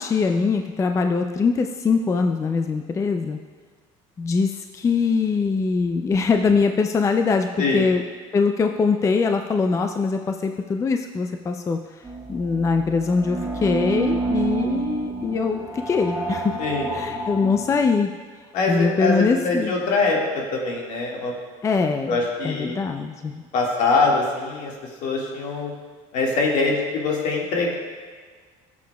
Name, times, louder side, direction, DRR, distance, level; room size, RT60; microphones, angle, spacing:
voice 1, 0.0-3.4 4.2-7.5 7.7-8.0 8.3-11.8 12.3-16.5 16.9-18.1 18.7-19.7 21.6-22.2 22.4-23.4, left 4 dB, 20° left, 5 dB, 0.4 m, -22 dB
sound 1, 12.0-17.8, right 3 dB, 20° right, 1.4 m, -29 dB
voice 2, 18.5-20.2 20.5-21.3 22.1-22.8 23.5-24.7 25.0-25.7 26.1-27.8, left 3 dB, 70° left, -2 dB, 1.8 m, -23 dB
14.0 x 7.3 x 2.3 m, 1.5 s
cardioid pair, 120°, 14 cm